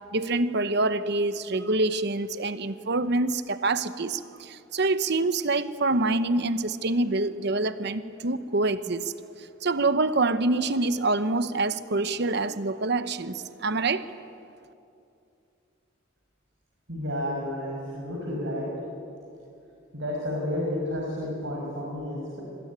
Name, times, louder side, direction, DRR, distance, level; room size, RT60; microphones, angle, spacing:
voice 1, 0.1-9.1 9.6-14.0, right 2 dB, 60° right, 12 dB, 1.0 m, -26 dB
voice 2, 16.9-18.7 19.9-22.4, left 1 dB, 75° right, -3 dB, 5.9 m, -31 dB
26.5 x 21.0 x 9.6 m, 2.6 s
head